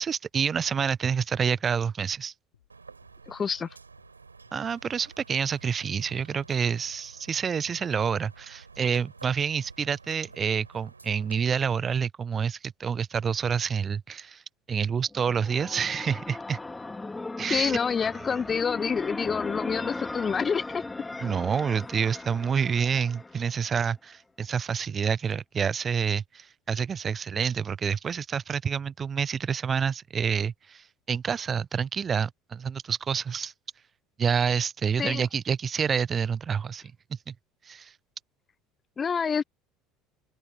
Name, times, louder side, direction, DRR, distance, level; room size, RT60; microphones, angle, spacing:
voice 1, 0.0-2.3 4.5-14.4 14.7-16.6 17.4-17.8 21.2-33.5 34.2-36.9 37.3-37.4 37.7-37.9, right 7 dB, 30° right, 0.3 m, -28 dB
sound 1, 1.6-1.7 2.1-2.2 2.5-2.7 3.0-3.2 3.5-3.7 4.0-4.1 4.4-4.6 4.9-5.1 5.4-5.6 5.9-6.1 6.4-6.5 6.9-7.0 7.3-7.5 7.8-8.0 8.3-8.5 8.8-8.9, left 10 dB, 80° left, 4.5 m, -64 dB
sound 2, 2.7-11.4, right 4 dB, 90° right, 6.5 m, -51 dB
voice 2, 3.3-3.7 17.5-20.8 35.0-35.3 39.0-39.4, left 6 dB, 30° left, 0.9 m, -27 dB
sound 3, 15.0-23.8, left 3 dB, 15° left, 2.7 m, -38 dB
open air
figure-of-eight pair, 65°, 0 cm